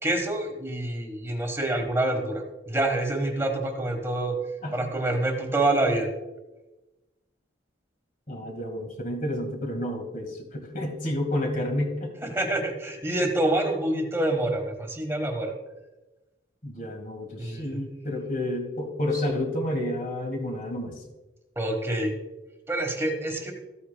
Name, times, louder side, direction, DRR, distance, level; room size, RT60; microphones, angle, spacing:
voice 1, 0.0-4.4 4.7-6.1 12.2-15.5 17.4-17.8 21.6-22.1 22.7-23.5, right 1 dB, 15° right, 4 dB, 1.3 m, -27 dB
voice 2, 8.3-12.1 16.6-21.0, left 1 dB, 45° left, 3 dB, 1.8 m, -30 dB
14.0 x 8.4 x 2.2 m, 1.1 s
head